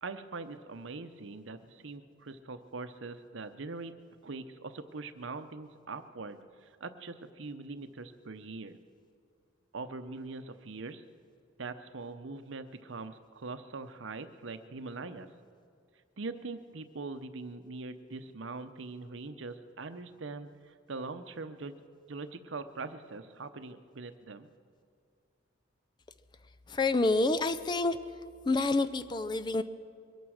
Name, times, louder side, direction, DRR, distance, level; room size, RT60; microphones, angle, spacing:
voice 1, 0.0-3.9 4.2-8.8 9.7-11.0 11.6-15.3 16.2-21.7 22.1-24.5, right 3 dB, 75° right, 11 dB, 0.8 m, -42 dB
voice 2, 26.7-28.0 28.5-29.6, left 2 dB, 20° left, 11 dB, 0.4 m, -28 dB
23.0 x 9.3 x 6.4 m, 2.2 s
head